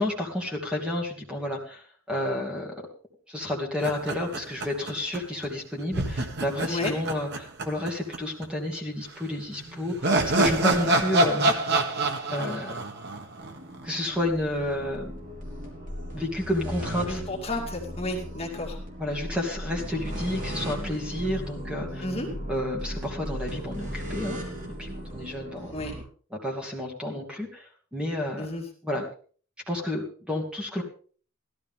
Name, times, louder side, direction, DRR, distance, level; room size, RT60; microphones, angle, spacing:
voice 1, 0.0-2.7 3.3-11.6 12.3-12.8 13.8-15.0 16.1-17.2 19.0-22.0 22.5-24.4 24.8-25.7 26.3-28.5 28.8-29.1 29.7-30.8, left 1 dB, 5° right, 0 dB, 2.6 m, -30 dB
sound 1, 3.8-5.2 5.4-5.5 5.9-8.2 8.4-8.5 9.5-13.8, right 2 dB, 55° right, 1.6 m, -26 dB
sound 2, 13.3-26.0, equal, 40° right, 3.9 m, -37 dB
voice 2, 17.1-18.8 22.0-22.3 25.7-25.9 28.4-28.6, left 2 dB, 30° left, -1 dB, 2.5 m, -31 dB
16.5 x 13.0 x 3.7 m, 0.43 s
head